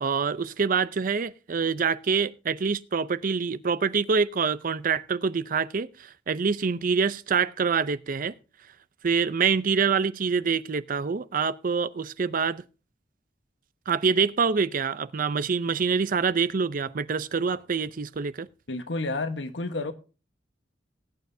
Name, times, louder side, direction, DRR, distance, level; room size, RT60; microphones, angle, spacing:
voice 1, 0.0-5.9 6.3-8.3 9.0-12.6 13.9-18.5, right 5 dB, 50° right, 0.5 m, -26 dB
voice 2, 18.7-19.9, left 2 dB, 75° left, 1.2 m, -30 dB
19.5 x 9.1 x 2.7 m
head